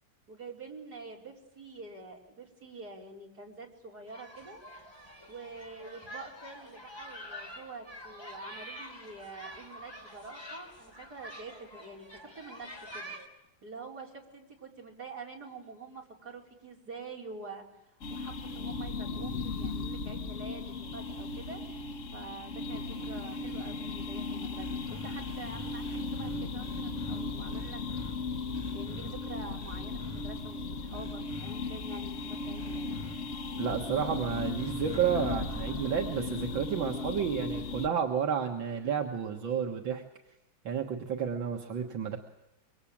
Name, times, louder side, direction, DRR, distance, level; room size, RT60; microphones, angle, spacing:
voice 1, 0.3-4.6 5.3-17.7 18.1-21.8 22.1-27.8 28.7-32.9, right 3 dB, 50° right, 0 dB, 5.0 m, -47 dB
sound 1, 4.1-13.3, equal, 10° left, 3.3 m, -47 dB
sound 2, 18.0-37.9, left 3 dB, 45° left, 1.5 m, -37 dB
sound 3, 24.6-27.2 27.5-28.1 28.5-29.1 29.6-30.2 30.9-31.5 32.6-33.1 34.3-36.3, left 2 dB, 5° right, 5.4 m, -44 dB
voice 2, 33.6-40.0 40.7-42.2, right 7 dB, 80° right, 3 dB, 2.3 m, -31 dB
26.0 x 24.0 x 8.7 m, 0.90 s
omnidirectional pair, 2.1 m